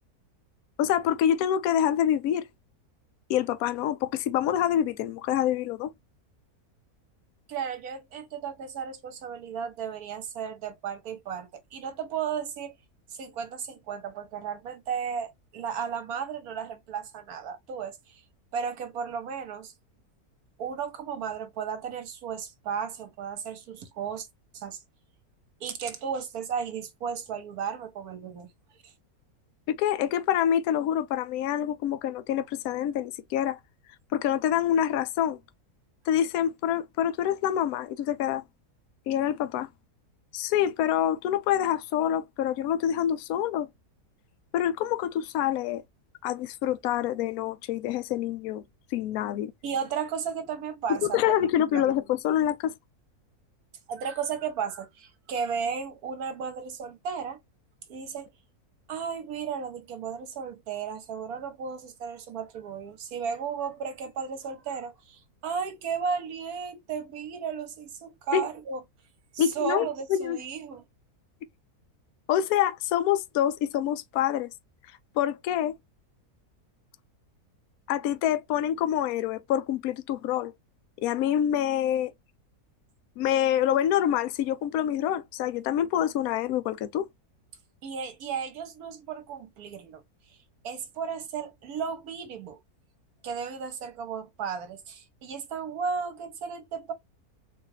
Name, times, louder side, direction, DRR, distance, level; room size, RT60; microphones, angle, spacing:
voice 1, 0.8-2.5 3.3-5.9 29.7-33.6 34.1-35.4 36.1-38.4 39.1-39.7 40.3-43.7 44.5-45.8 46.2-48.6 48.9-49.5 51.0-52.7 68.3-68.4 69.4-70.4 72.3-74.5 75.2-75.7 77.9-80.5 81.0-82.1 83.2-87.1, left 10 dB, 75° left, 1.0 m, -26 dB
voice 2, 7.5-12.8 13.1-18.2 18.5-19.7 20.6-24.3 24.5-24.8 25.6-28.5 28.8-28.9 49.6-51.2 51.7-51.9 53.9-57.4 57.9-58.3 58.9-68.8 69.3-70.8 87.8-90.0 90.6-92.6 93.2-96.9, right 6 dB, 70° right, 1.3 m, -34 dB
4.0 x 2.3 x 3.1 m
omnidirectional pair, 1.7 m